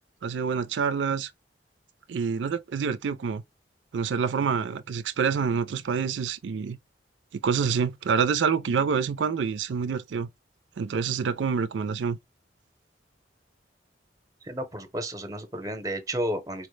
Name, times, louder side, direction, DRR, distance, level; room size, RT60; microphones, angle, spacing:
voice 1, 0.2-1.3 2.1-3.4 3.9-6.8 7.3-10.3 10.8-12.2, right 6 dB, 85° right, 0.4 m, -27 dB
voice 2, 14.4-16.7, right 1 dB, 20° right, 0.7 m, -32 dB
4.4 x 2.1 x 3.2 m
head